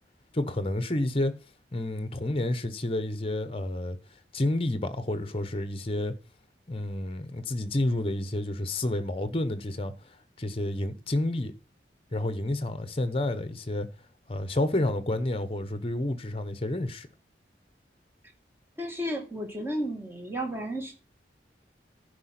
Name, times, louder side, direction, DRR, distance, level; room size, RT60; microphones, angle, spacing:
voice 1, 0.3-1.3 1.7-4.0 4.3-6.1 6.7-9.9 10.4-11.5 12.1-13.9 14.3-17.1, left 1 dB, 30° left, 0.9 m, -29 dB
voice 2, 18.8-20.9, equal, 15° right, 2.0 m, -33 dB
10.5 x 5.1 x 5.8 m
head